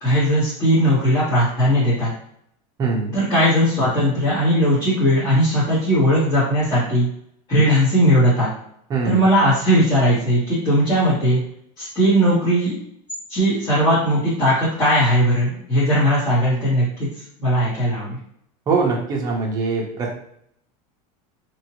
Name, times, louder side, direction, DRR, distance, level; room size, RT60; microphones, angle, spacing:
voice 1, 0.0-2.1 3.1-7.1 7.5-8.5 9.0-11.4 11.8-12.8 13.3-17.1 17.4-18.2, equal, 25° left, -13 dB, 1.3 m, -18 dB
voice 2, 2.8-3.1 8.9-9.3 18.7-20.2, right 4 dB, 20° right, -2 dB, 0.7 m, -22 dB
2.9 x 2.6 x 2.9 m, 0.69 s
supercardioid pair, 160°, 18 cm